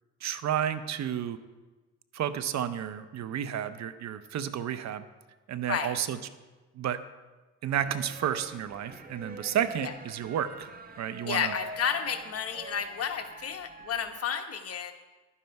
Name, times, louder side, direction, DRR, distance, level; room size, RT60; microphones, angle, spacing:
voice 1, 0.2-1.4 2.1-5.0 5.5-6.2 6.7-7.0 7.6-10.7 11.0-11.5, right 9 dB, 65° right, 12 dB, 0.8 m, -31 dB
sound 1, 7.7-14.2, right 3 dB, 30° right, 1.1 m, -46 dB
voice 2, 11.2-14.9, left 7 dB, 50° left, 6 dB, 1.2 m, -31 dB
11.5 x 9.9 x 4.7 m, 1.2 s
cardioid pair, 90°, 30 cm